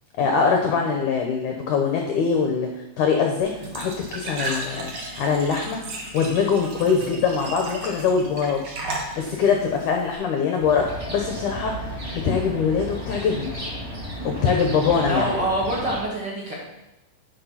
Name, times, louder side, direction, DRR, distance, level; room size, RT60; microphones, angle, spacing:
voice 1, 0.2-2.7 3.0-4.9 5.2-8.7 9.2-13.5 14.2-15.3, left 5 dB, 80° left, 2 dB, 1.8 m, -23 dB
Glass / Trickle dribble / Fill (with liquid), 3.4-10.1, right 2 dB, 70° right, 1.2 m, -35 dB
sound 1, 10.6-16.0, equal, 20° right, 2.7 m, -34 dB
voice 2, 15.1-16.5, right 1 dB, 45° right, -5 dB, 1.5 m, -26 dB
9.6 x 5.7 x 5.7 m, 0.93 s
omnidirectional pair, 4.9 m